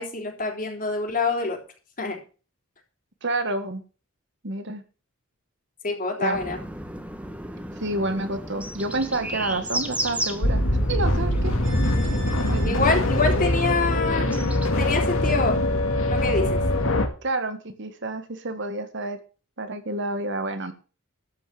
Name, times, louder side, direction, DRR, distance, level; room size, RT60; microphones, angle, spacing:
voice 1, 0.0-1.6 2.0-2.2 5.8-6.6 12.6-14.3 14.8-15.6 16.0-16.6, left 3 dB, 40° left, 3 dB, 3.5 m, -25 dB
voice 2, 3.2-3.8 4.4-4.8 6.2-6.4 7.8-11.5 12.4-12.8 17.2-19.2 19.6-20.7, right 2 dB, 55° right, 9 dB, 1.6 m, -29 dB
sound 1, 6.3-14.7, right 1 dB, 5° right, 1.3 m, -34 dB
sound 2, 10.4-17.1, left 1 dB, 75° left, 2.4 m, -23 dB
sound 3, 11.6-14.9 15.2-15.3, left 2 dB, 75° right, 3.7 m, -41 dB
13.0 x 5.4 x 7.6 m, 0.36 s
head